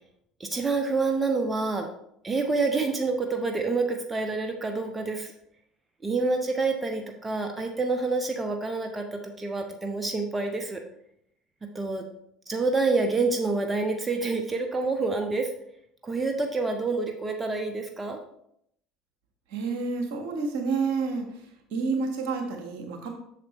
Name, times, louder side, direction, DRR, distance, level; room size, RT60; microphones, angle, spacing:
voice 1, 0.4-1.9 2.2-5.3 6.0-10.8 11.7-12.0 12.5-15.5 16.0-18.2, right 3 dB, 20° right, 3 dB, 1.0 m, -27 dB
voice 2, 19.5-21.3 21.7-23.1, right 4 dB, 65° right, 3 dB, 1.4 m, -29 dB
7.5 x 6.6 x 3.1 m, 0.73 s
hypercardioid pair, 65°, 0 cm